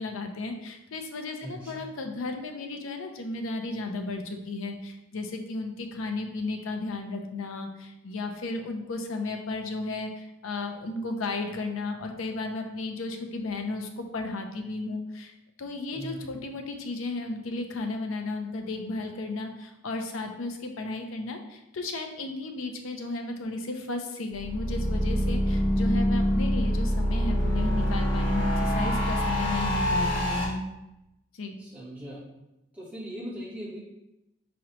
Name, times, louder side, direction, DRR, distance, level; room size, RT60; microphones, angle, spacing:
voice 1, 0.0-15.3 15.6-30.7 31.3-31.6, left 2 dB, 85° left, 5 dB, 0.6 m, -34 dB
voice 2, 1.4-1.8 15.9-16.2 31.6-32.2 32.7-33.8, equal, 5° right, -8 dB, 1.3 m, -39 dB
sound 1, 24.3-30.4, equal, 25° left, 1.3 m, -25 dB
4.8 x 3.1 x 3.0 m, 0.90 s
head